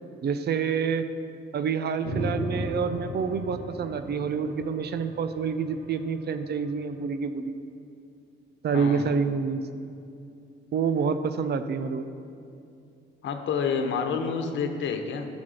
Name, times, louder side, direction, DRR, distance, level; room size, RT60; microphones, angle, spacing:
voice 1, 0.2-1.1 1.5-7.5 8.6-9.6 10.7-12.1, right 6 dB, 55° right, 10 dB, 0.7 m, -27 dB
sound 1, 2.0-6.7, equal, 85° right, 2.4 m, -36 dB
voice 2, 8.7-9.1 13.2-15.3, left 6 dB, 70° left, 6 dB, 1.1 m, -28 dB
11.5 x 6.2 x 6.4 m, 2.5 s
cardioid pair, 90°, 20 cm